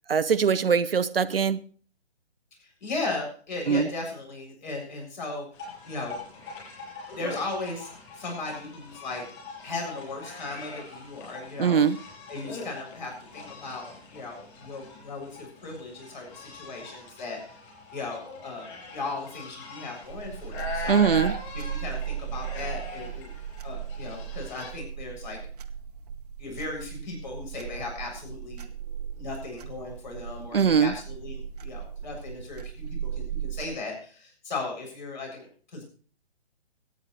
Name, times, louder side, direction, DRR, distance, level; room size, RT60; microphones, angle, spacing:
voice 1, 0.1-1.6 3.7-3.9 11.6-12.0 20.9-21.4 30.5-30.9, right 6 dB, 60° right, 0.7 m, -22 dB
voice 2, 2.6-5.5 5.8-6.2 7.1-9.2 9.6-11.8 12.3-17.6 17.9-21.1 21.5-23.3 23.6-25.4 26.4-28.7 29.2-35.8, left 3 dB, 45° left, 7.3 m, -37 dB
sound 1, 5.5-24.7, left 3 dB, 25° left, 7.4 m, -42 dB
sound 2, 20.0-33.7, right 8 dB, 35° right, 1.1 m, -37 dB
23.0 x 9.4 x 3.2 m
figure-of-eight pair, 135°, 33 cm